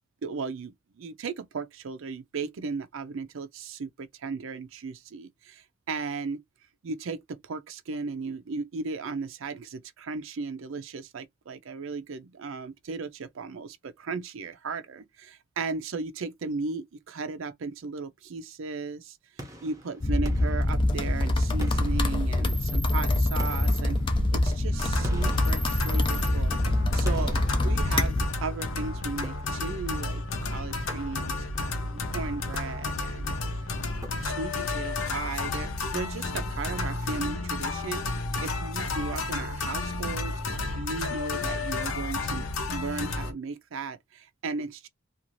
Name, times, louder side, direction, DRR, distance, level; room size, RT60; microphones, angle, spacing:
voice 1, 0.2-6.4 6.8-24.0 24.3-27.4 27.6-33.4 34.1-38.1 38.4-40.4 40.7-44.9, right 4 dB, 70° right, 0.5 m, -36 dB
sound 1, 19.4-21.2 21.6-22.8 23.4-26.4 27.0-28.5 29.2-29.9 30.9-31.6 32.4-33.2 34.0-34.7, right 1 dB, 15° right, 0.6 m, -45 dB
sound 2, 20.0-28.3, left 1 dB, 25° left, 0.4 m, -25 dB
sound 3, 24.7-43.3, left 3 dB, 80° left, 0.7 m, -32 dB
2.6 x 2.4 x 3.0 m
head